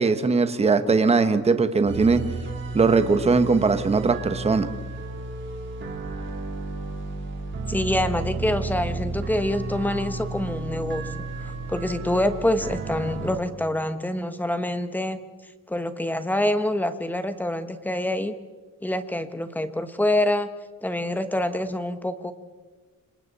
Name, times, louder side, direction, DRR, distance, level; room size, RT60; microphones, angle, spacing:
voice 1, 0.0-2.2 2.7-4.7, right 4 dB, 20° right, 9 dB, 1.2 m, -20 dB
sound 1, 1.9-13.4, right 3 dB, 40° right, 3.5 m, -32 dB
voice 2, 7.7-15.2 15.7-18.3 18.8-20.5 20.8-22.3, left 1 dB, 5° left, 10 dB, 1.1 m, -26 dB
29.0 x 26.5 x 4.2 m, 1.4 s
cardioid pair, 165°, 29 cm